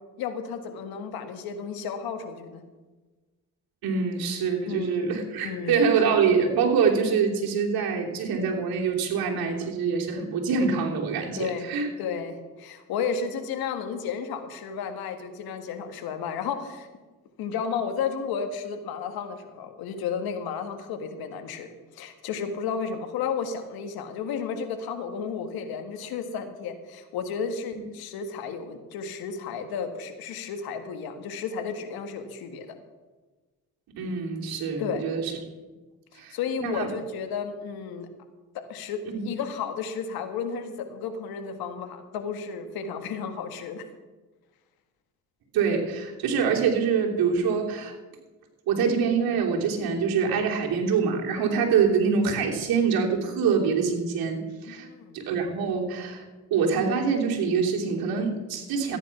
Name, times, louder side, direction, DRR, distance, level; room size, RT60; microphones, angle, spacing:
voice 1, 0.2-2.6 4.7-5.1 5.4-5.8 11.4-11.7 12.0-16.9 17.4-21.7 21.9-32.7 34.8-35.0 36.1-38.1 38.7-39.0 39.2-43.8 54.7-55.2, left 6 dB, 85° left, 7 dB, 1.7 m, -33 dB
voice 2, 3.8-11.9 34.0-35.3 36.1-36.9 39.1-39.3 45.5-47.9 48.7-54.9 55.1-56.2 56.5-59.0, right 6 dB, 80° right, 0 dB, 3.0 m, -25 dB
14.0 x 10.0 x 5.9 m, 1.2 s
cardioid pair, 80°, 36 cm